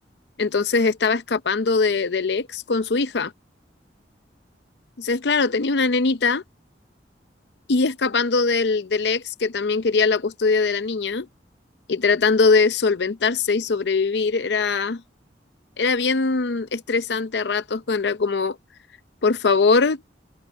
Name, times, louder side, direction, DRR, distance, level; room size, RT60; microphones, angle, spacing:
voice 1, 0.4-3.3 5.0-6.4 7.7-11.3 11.9-15.0 15.8-18.6 19.2-20.0, left 4 dB, 70° left, 0.6 m, -21 dB
head